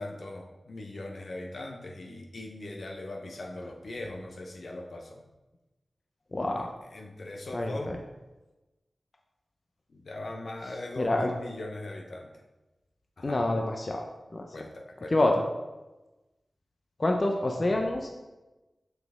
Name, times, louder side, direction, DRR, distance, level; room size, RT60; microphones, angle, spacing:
voice 1, 0.0-5.2 6.6-6.7 6.9-7.9 9.9-12.4 13.2-13.4 14.5-15.1, left 2 dB, 70° left, 2 dB, 0.9 m, -40 dB
voice 2, 6.3-6.7 7.5-8.0 11.0-11.3 13.2-14.0 14.3-14.4 15.1-15.4 17.0-18.1, left 1 dB, 45° left, 2 dB, 0.7 m, -27 dB
5.9 x 5.8 x 3.6 m, 1.1 s
cardioid pair, 40°, 0 cm